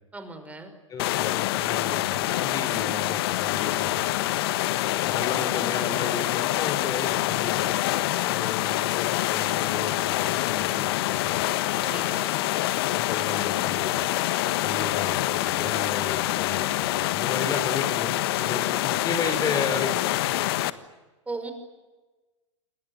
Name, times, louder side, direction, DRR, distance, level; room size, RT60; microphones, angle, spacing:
voice 1, 0.1-0.7 11.8-12.3 21.3-21.5, right 3 dB, 10° right, 8 dB, 5.5 m, -37 dB
voice 2, 0.9-4.0 5.0-7.7 8.2-11.4 12.9-14.1 14.4-20.1, left 4 dB, 25° left, 9 dB, 4.8 m, -34 dB
sound 1, 1.0-20.7, left 15 dB, 55° left, 1.4 m, -26 dB
28.5 x 21.0 x 9.3 m, 1.2 s
figure-of-eight pair, 100°, 16 cm